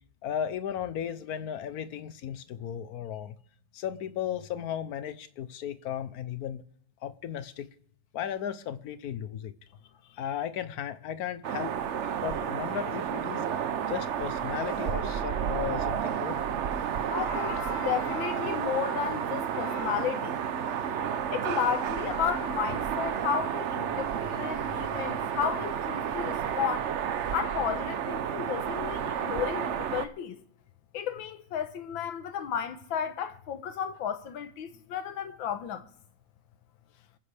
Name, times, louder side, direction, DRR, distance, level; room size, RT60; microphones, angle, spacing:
voice 1, 0.2-3.4 3.7-6.6 7.0-7.7 8.1-9.5 10.2-11.7 12.2-13.5 13.9-16.4, left 9 dB, 60° left, 1.1 m, -35 dB
sound 1, 11.4-30.1, right 8 dB, 70° right, 0.6 m, -31 dB
voice 2, 17.1-20.4 21.3-26.9 27.3-30.4 30.9-35.8, left 8 dB, 85° left, 1.8 m, -33 dB
28.0 x 9.7 x 3.4 m
omnidirectional pair, 2.1 m